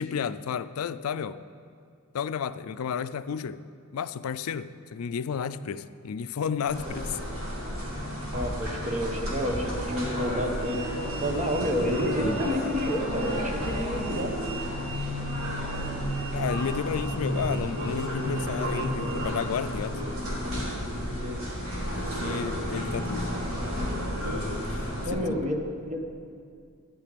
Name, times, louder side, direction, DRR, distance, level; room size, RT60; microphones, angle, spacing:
voice 1, 0.0-1.4 2.1-3.6 3.9-7.2 16.3-20.0 21.9-23.3 24.8-25.4, left 7 dB, 80° left, 14 dB, 0.4 m, -32 dB
sound 1, 6.7-25.1, equal, 75° right, 3.3 m, -31 dB
voice 2, 8.3-10.9 11.2-14.3 21.2-21.4 25.1-25.6 25.9-26.0, equal, 35° right, 3 dB, 1.2 m, -29 dB
13.0 x 10.0 x 5.1 m, 2.3 s
head